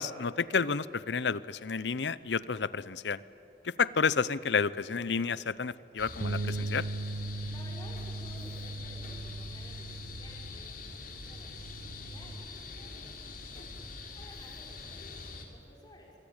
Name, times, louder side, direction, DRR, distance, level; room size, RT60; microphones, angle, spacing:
voice 1, 0.0-3.2 3.6-6.8, left 5 dB, 75° left, 18 dB, 0.7 m, -30 dB
sound 1, 6.0-15.4, left 3 dB, 55° left, 3.5 m, -44 dB
Bass guitar, 6.2-12.5, right 2 dB, 75° right, 0.7 m, -39 dB
voice 2, 7.5-16.1, left 1 dB, 25° left, -1 dB, 5.9 m, -55 dB
25.5 x 24.5 x 9.0 m, 2.8 s
head